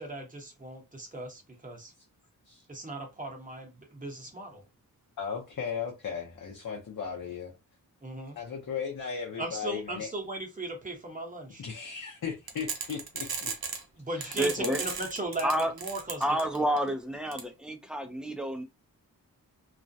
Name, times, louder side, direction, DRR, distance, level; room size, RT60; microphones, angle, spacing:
voice 1, 0.0-1.9 2.7-4.6 8.0-8.4 9.4-11.6 14.0-16.6, right 2 dB, 25° right, 0.9 m, -38 dB
voice 2, 5.2-7.6 8.4-10.1 11.6-13.5 14.1-14.8, left 6 dB, 60° left, 0.7 m, -36 dB
sound 1, 12.5-13.8 14.2-16.8 17.3-17.4, right 5 dB, 90° right, 0.7 m, -35 dB
voice 3, 14.4-14.8 15.4-15.7 16.2-18.6, right 1 dB, ahead, 0.4 m, -29 dB
2.4 x 2.1 x 2.6 m
wide cardioid pair, 95°, 35 cm